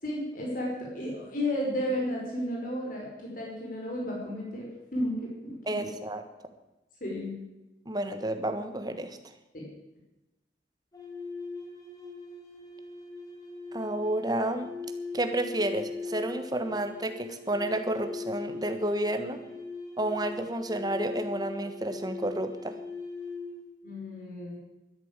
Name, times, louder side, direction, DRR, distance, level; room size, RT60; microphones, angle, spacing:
voice 1, 0.0-4.7 4.9-5.9 7.0-7.4 9.5-9.6 23.8-24.6, left 1 dB, 50° left, -2 dB, 5.0 m, -33 dB
voice 2, 5.7-6.2 7.8-9.2 13.7-14.7 15.1-19.4 20.0-22.7, right 1 dB, 20° right, 7 dB, 1.4 m, -30 dB
sound 1, 10.9-23.6, left 3 dB, 20° left, 2.6 m, -40 dB
12.5 x 10.5 x 8.9 m, 1.0 s
head